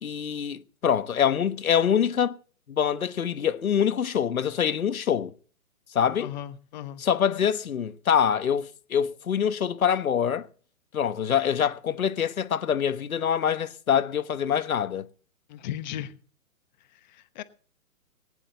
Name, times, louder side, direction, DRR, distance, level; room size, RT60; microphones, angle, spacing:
voice 1, 0.0-2.4 2.7-5.3 5.9-6.3 7.0-10.5 10.9-15.1, left 8 dB, 75° left, 1.2 m, -25 dB
voice 2, 6.2-7.0 15.5-16.2 16.9-17.4, left 11 dB, 30° left, 1.0 m, -37 dB
20.0 x 10.0 x 4.0 m
hypercardioid pair, 140°, 43 cm